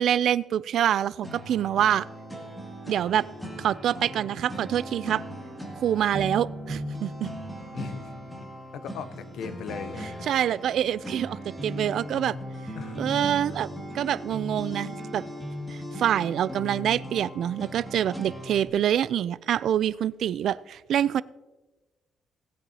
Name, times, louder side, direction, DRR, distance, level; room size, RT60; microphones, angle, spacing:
voice 1, 0.0-2.1 2.9-3.2 3.6-5.2 5.8-7.3 10.3-12.4 13.0-13.7 13.9-15.2 15.7-21.2, right 10 dB, 65° right, 19 dB, 0.3 m, -26 dB
sound 1, 1.2-18.7, equal, ahead, 2.2 m, -38 dB
voice 2, 7.7-8.1 8.7-10.3 12.8-13.0 13.3-13.6 18.6-18.8, left 6 dB, 75° left, 12 dB, 0.8 m, -39 dB
18.5 x 9.0 x 2.8 m, 1.1 s
cardioid pair, 135°, 0 cm